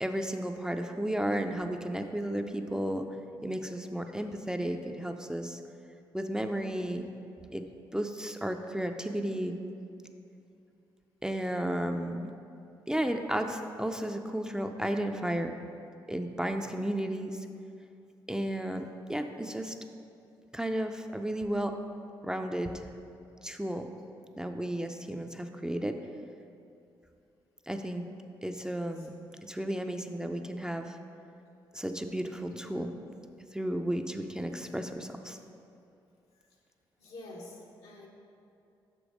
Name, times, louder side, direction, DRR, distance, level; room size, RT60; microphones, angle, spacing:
voice 1, 0.0-3.1 3.4-5.6 6.1-7.1 7.5-7.7 7.9-9.6 11.2-12.3 12.9-15.5 16.1-17.4 18.3-19.7 20.5-21.7 22.2-22.8 23.4-23.9 24.4-26.0 27.7-28.1 28.4-31.0 31.7-32.9 33.5-35.4, right 1 dB, 5° right, 5 dB, 0.5 m, -33 dB
voice 2, 37.0-38.1, left 2 dB, 80° left, -3 dB, 1.2 m, -47 dB
6.1 x 5.2 x 4.9 m, 2.6 s
supercardioid pair, 50°, 10 cm